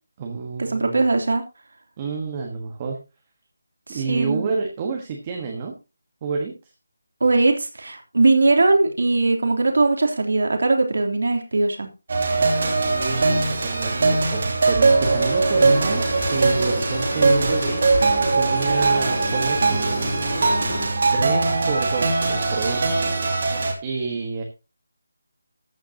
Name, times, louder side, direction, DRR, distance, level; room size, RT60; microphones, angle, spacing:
voice 1, 0.2-1.0 2.0-3.0 3.9-5.7 6.2-6.7 12.8-20.5 21.1-23.2 23.8-24.4, right 4 dB, 20° right, 2 dB, 1.4 m, -29 dB
voice 2, 0.7-1.4 3.9-4.5 7.2-11.9, right 3 dB, 65° right, 4 dB, 3.2 m, -20 dB
sound 1, 12.1-23.7, right 3 dB, 40° right, 2.9 m, -21 dB
sound 2, 15.0-20.9, left 2 dB, 80° left, 4.1 m, -31 dB
14.5 x 9.3 x 2.9 m, 0.28 s
figure-of-eight pair, 175°, 0 cm